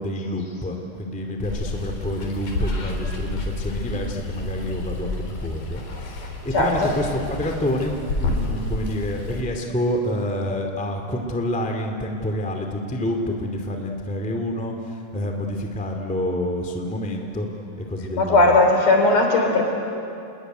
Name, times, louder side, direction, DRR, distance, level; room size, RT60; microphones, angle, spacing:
voice 1, 0.0-17.5 17.8-18.6, left 1 dB, 5° left, 3 dB, 2.1 m, -28 dB
Water, 1.4-9.4, left 2 dB, 75° left, 5.3 m, -30 dB
voice 2, 6.5-6.9 18.2-19.6, left 2 dB, 55° left, 3 dB, 4.8 m, -17 dB
28.5 x 21.5 x 9.4 m, 2.6 s
omnidirectional pair, 3.6 m